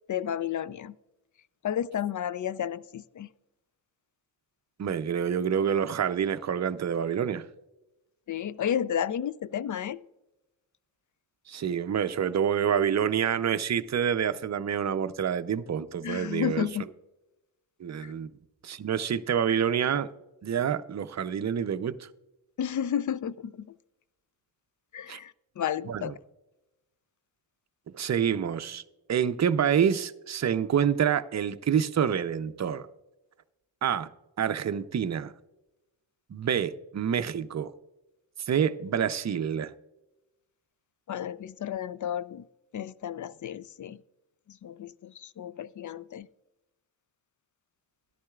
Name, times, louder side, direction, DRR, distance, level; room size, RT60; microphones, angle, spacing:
voice 1, 0.1-0.9 1.6-3.3 8.3-10.0 16.0-16.9 18.0-18.1 22.6-23.7 24.9-26.1 41.1-42.4 42.7-44.0 44.5-46.3, left 9 dB, 45° left, 0.5 m, -32 dB
voice 2, 4.8-7.5 11.5-16.7 17.8-18.3 18.6-20.1 20.4-22.1 25.1-25.2 25.9-26.1 27.9-28.8 29.1-32.9 33.8-34.1 34.4-35.3 36.3-37.7 38.4-39.7, right 8 dB, 35° right, 0.6 m, -27 dB
13.0 x 11.0 x 2.4 m
cardioid pair, 60°, 46 cm